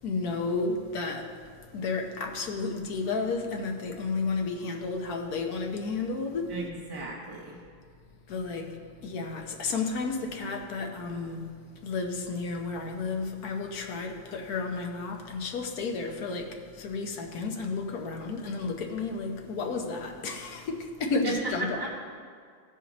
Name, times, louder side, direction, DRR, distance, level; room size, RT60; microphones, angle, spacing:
voice 1, 0.0-1.4 1.7-6.5 8.3-11.5 11.8-21.8, left 4 dB, 60° left, 1.3 m, -32 dB
voice 2, 6.5-7.6 21.2-21.9, right 2 dB, 20° right, 0.7 m, -35 dB
15.5 x 5.2 x 4.0 m
omnidirectional pair, 2.0 m